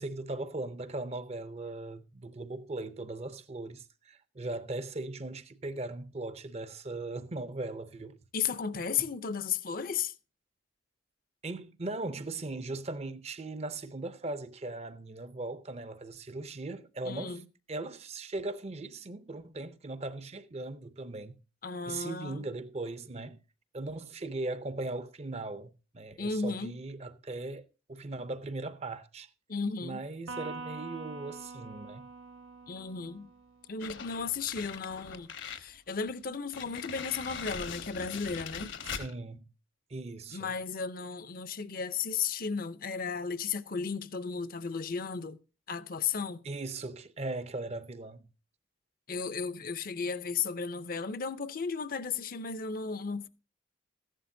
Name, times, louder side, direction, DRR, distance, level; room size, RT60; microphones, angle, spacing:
voice 1, 0.0-8.2 9.0-9.1 11.4-17.4 17.7-21.4 21.9-23.4 23.7-29.3 29.8-32.1 38.8-39.4 39.9-40.5 46.4-48.3, right 2 dB, 30° right, 0.6 m, -39 dB
voice 2, 8.3-10.1 17.0-17.4 21.6-22.4 26.2-26.8 29.5-30.0 32.7-33.3 33.7-38.7 40.3-45.4 45.7-46.4 49.1-53.3, left 5 dB, 45° left, 0.6 m, -34 dB
Electric guitar, 30.3-33.8, right 3 dB, 80° right, 1.0 m, -44 dB
sound 1, 33.8-35.7 36.1-36.2 36.5-39.1, left 6 dB, 70° left, 1.2 m, -41 dB
14.5 x 11.5 x 2.6 m
head